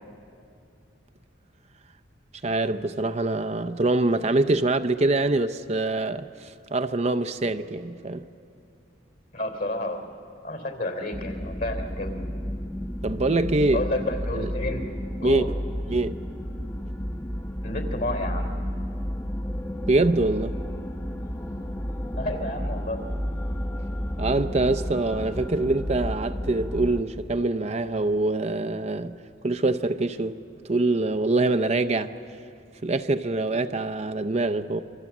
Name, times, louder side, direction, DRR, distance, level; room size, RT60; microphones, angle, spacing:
voice 1, 2.4-8.2 13.0-13.9 14.3-14.5 15.2-15.4 15.9-16.2 19.9-20.6 24.2-30.4 30.7-32.1 32.8-34.8, right 2 dB, 35° right, 0.6 m, -24 dB
voice 2, 9.3-10.0 10.4-12.1 13.7-14.9 15.2-15.5 17.6-18.5 22.2-23.0, left 1 dB, 55° left, 3.4 m, -30 dB
sound 1, 11.1-27.0, equal, 15° left, 0.9 m, -32 dB
27.5 x 24.5 x 7.2 m
head